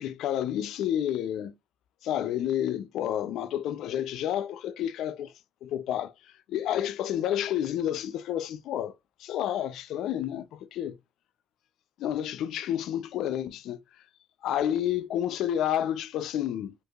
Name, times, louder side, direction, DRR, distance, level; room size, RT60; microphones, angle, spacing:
voice 1, 0.0-1.5 2.0-5.3 5.6-6.1 6.5-8.9 9.2-11.0 12.0-13.8 14.4-16.7, left 11 dB, 85° left, 0.4 m, -30 dB
4.7 x 2.5 x 2.3 m
cardioid pair, 90°, 0 cm